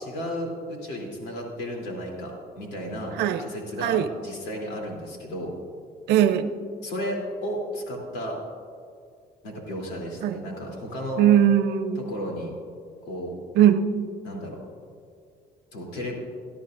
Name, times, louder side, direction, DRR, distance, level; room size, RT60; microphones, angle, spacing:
voice 1, 0.0-5.5 6.8-8.4 9.4-11.2 11.9-12.5 13.0-13.4 14.2-14.6 15.7-16.2, equal, 90° left, -2 dB, 3.1 m, -33 dB
voice 2, 6.1-6.5 10.2-10.4 11.2-12.1 13.6-14.1, right 10 dB, 85° right, 10 dB, 0.7 m, -20 dB
18.0 x 12.5 x 2.6 m, 2.3 s
cardioid pair, 110°, 17 cm